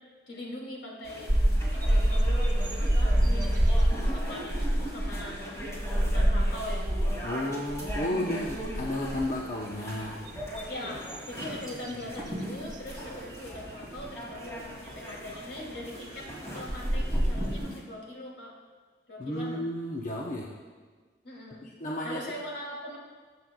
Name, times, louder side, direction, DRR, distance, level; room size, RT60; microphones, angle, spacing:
voice 1, 0.3-1.4 1.7-2.2 2.8-5.6 6.0-6.9 10.7-18.5 19.1-19.6 21.2-21.7 22.0-23.0, left 1 dB, 75° left, -3 dB, 2.7 m, -41 dB
sound 1, 1.0-17.8, equal, 20° left, 2.6 m, -40 dB
sound 2, 1.3-7.3 7.7-8.1 8.4-9.4 10.0-12.3 12.7-12.9 14.0-14.1 16.2-16.3 16.7-17.6, right 1 dB, 25° right, 0.9 m, -26 dB
voice 2, 7.2-10.2 19.2-20.5 21.6-22.2, left 1 dB, 45° left, -3 dB, 0.9 m, -32 dB
22.0 x 7.7 x 2.3 m, 1.5 s
head